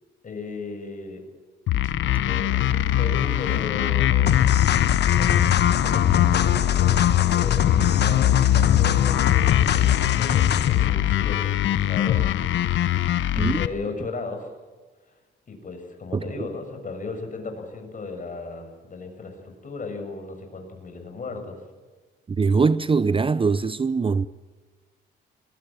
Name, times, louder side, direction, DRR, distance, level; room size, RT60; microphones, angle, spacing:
voice 1, 0.2-1.2 2.1-4.4 4.9-7.0 7.3-12.3 12.6-13.0 13.4-14.5 15.5-21.6, left 3 dB, 40° left, 6.8 m, -36 dB
sound 1, 1.7-13.7, left 12 dB, 75° left, 1.0 m, -22 dB
sound 2, 4.3-10.9, left 9 dB, 55° left, 1.4 m, -23 dB
voice 2, 16.1-16.5 22.4-24.3, right 4 dB, 25° right, 0.7 m, -22 dB
22.0 x 21.0 x 7.6 m
cardioid pair, 90°, 20 cm